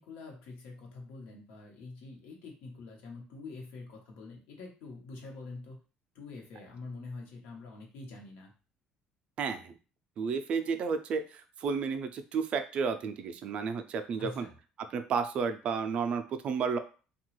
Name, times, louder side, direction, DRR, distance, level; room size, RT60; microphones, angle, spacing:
voice 1, 0.0-5.8 6.1-8.5 14.2-14.6, left 3 dB, 80° left, 1 dB, 0.9 m, -45 dB
voice 2, 9.4-9.7 10.2-14.5 14.9-16.8, right 5 dB, 40° right, 8 dB, 0.3 m, -32 dB
2.8 x 2.2 x 3.0 m, 0.36 s
cardioid pair, 160°, 3 cm